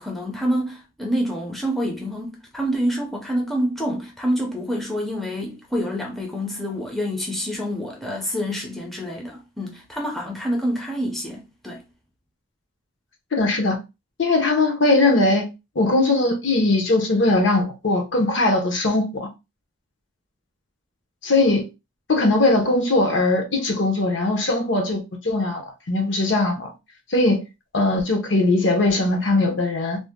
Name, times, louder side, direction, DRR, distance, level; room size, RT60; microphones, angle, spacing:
voice 1, 0.0-11.8, equal, ahead, 0.5 m, -27 dB
voice 2, 13.3-13.8 14.2-15.4 15.8-19.3 21.2-21.7 22.1-26.7 27.1-27.4 27.7-30.0, left 2 dB, 60° left, 0.7 m, -20 dB
2.6 x 2.0 x 3.5 m
head